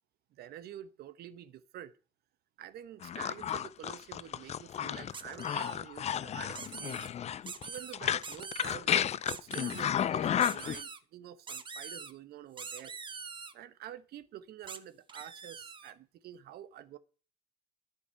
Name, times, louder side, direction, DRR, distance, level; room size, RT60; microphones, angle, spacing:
voice 1, 0.3-1.9 2.6-7.0 7.6-12.9 13.5-17.0, right 11 dB, 70° right, 1.1 m, -48 dB
sound 1, 3.0-10.8, left 9 dB, 40° left, 0.5 m, -32 dB
sound 2, 5.1-5.8 6.5-7.1 7.4-7.9 8.2-8.8 9.3-9.8 10.4-11.0 11.5-12.1 12.6-13.5 14.7-14.8 15.1-15.9, right 5 dB, 30° right, 0.9 m, -44 dB
11.0 x 7.9 x 5.7 m
cardioid pair, 110°, 17 cm